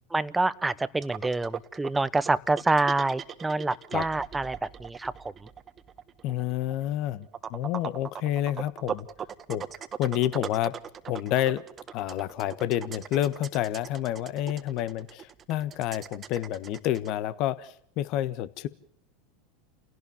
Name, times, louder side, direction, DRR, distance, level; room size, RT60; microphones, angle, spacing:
voice 1, 0.1-5.1, right 2 dB, 10° right, 17 dB, 1.0 m, -27 dB
sound 1, 1.0-17.1, right 8 dB, 30° right, 1.3 m, -40 dB
voice 2, 6.2-9.1 9.5-9.6 10.0-10.7 11.1-11.6 11.9-18.7, left 12 dB, 55° left, 15 dB, 1.4 m, -29 dB
29.5 x 17.0 x 7.2 m, 0.68 s
hypercardioid pair, 90°, 0 cm